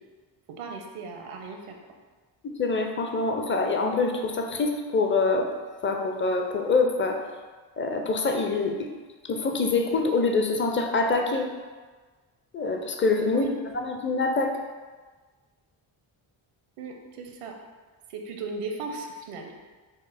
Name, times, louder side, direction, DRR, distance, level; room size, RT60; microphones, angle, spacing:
voice 1, 0.6-1.8 13.3-13.5 16.8-17.5 18.1-19.5, right 4 dB, 80° right, 2 dB, 0.7 m, -37 dB
voice 2, 2.4-5.5 5.8-7.2 7.8-8.9 9.3-11.5 12.5-13.5 13.7-14.5, left 3 dB, 25° left, 3 dB, 0.5 m, -25 dB
5.6 x 2.1 x 3.4 m, 1.4 s
cardioid pair, 65°, 50 cm